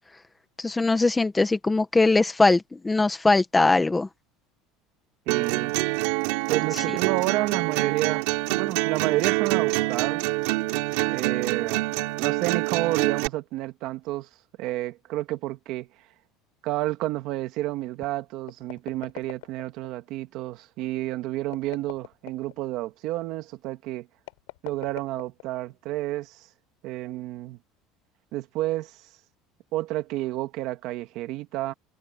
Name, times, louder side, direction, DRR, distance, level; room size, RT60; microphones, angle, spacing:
voice 1, 0.6-4.1, left 3 dB, 10° left, 1.2 m, -21 dB
voice 2, 5.3-5.7 6.5-8.3 8.6-10.3 11.1-11.8 12.2-14.3 14.6-15.9 16.6-24.1 24.6-26.5 26.8-27.6 28.3-29.0 29.7-31.7, right 16 dB, 50° right, 2.1 m, -30 dB
sound 1, 5.3-13.3, right 21 dB, 70° right, 2.8 m, -26 dB
sound 2, 18.4-19.9 21.4-22.6 24.2-25.7, left 22 dB, 85° left, 6.7 m, -42 dB
cardioid pair, 165°, 0 cm